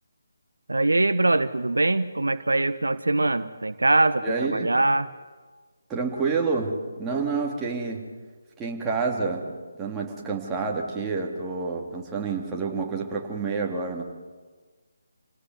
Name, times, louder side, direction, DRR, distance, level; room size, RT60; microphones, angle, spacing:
voice 1, 0.7-5.1, right 2 dB, 70° right, 12 dB, 1.0 m, -23 dB
voice 2, 4.2-4.7 5.9-6.7 7.0-8.0 8.6-9.5 9.8-14.0, right 4 dB, 10° right, -2 dB, 3.1 m, -28 dB
28.0 x 18.5 x 9.6 m, 1.4 s
figure-of-eight pair, 150°, 0 cm